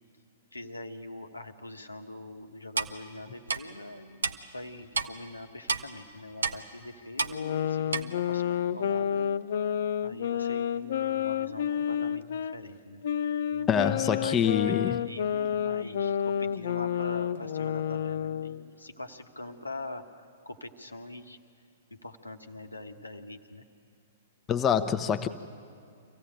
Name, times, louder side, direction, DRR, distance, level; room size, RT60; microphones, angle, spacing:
voice 1, 0.5-9.3 10.0-13.1 13.5-14.8 15.1-21.4 21.9-23.6, left 2 dB, 85° left, 6 dB, 1.3 m, -43 dB
Clock, 2.8-2.9 3.5-3.6 4.2-4.3 4.9-5.1 5.7-5.8 6.4-6.6 7.2-7.3 7.9-8.0, right 4 dB, 75° right, 0.7 m, -28 dB
sound 1, 7.3-12.6 13.0-18.6, left 9 dB, 55° left, 0.5 m, -30 dB
voice 2, 13.7-15.0 24.5-25.3, left 8 dB, 20° left, 10 dB, 0.9 m, -25 dB
25.0 x 16.0 x 8.9 m, 2.3 s
figure-of-eight pair, 110°, 0 cm